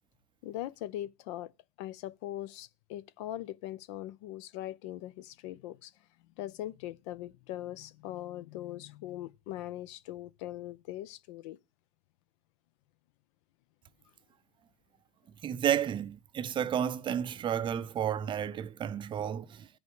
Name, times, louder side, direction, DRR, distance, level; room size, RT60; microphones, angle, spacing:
voice 1, 0.4-1.5 1.8-5.9 6.4-11.6, left 14 dB, 70° left, 0.5 m, -41 dB
voice 2, 15.4-19.7, right 9 dB, 30° right, 0.5 m, -31 dB
15.0 x 5.3 x 3.1 m
supercardioid pair, 105°, 16 cm